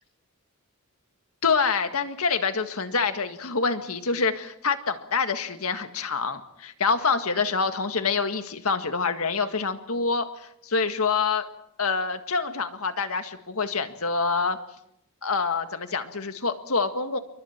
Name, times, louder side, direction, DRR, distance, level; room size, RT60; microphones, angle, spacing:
voice 1, 1.4-11.4 11.8-14.6 15.2-17.2, left 4 dB, 80° left, 8 dB, 1.7 m, -26 dB
28.5 x 23.5 x 4.5 m, 0.77 s
head